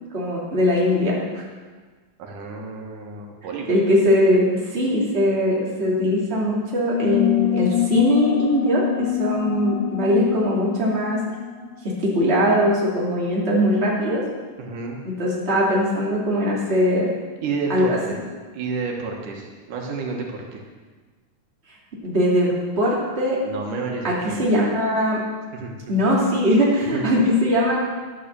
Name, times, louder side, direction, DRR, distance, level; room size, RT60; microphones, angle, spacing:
voice 1, 0.0-1.4 3.7-4.5 4.7-11.2 12.0-14.2 15.0-17.1 17.7-18.0 22.0-22.5 22.8-23.4 24.0-25.2 25.9-27.8, equal, 20° right, -5 dB, 2.8 m, -20 dB
voice 2, 2.2-3.7 14.6-15.0 17.4-18.2 18.5-20.6 23.4-24.5 25.5-26.0 26.9-27.1, right 4 dB, 85° right, 0 dB, 3.1 m, -30 dB
sound 1, 6.9-12.1, left 13 dB, 90° left, 2.4 m, -25 dB
11.5 x 8.4 x 6.9 m, 1.4 s
omnidirectional pair, 3.5 m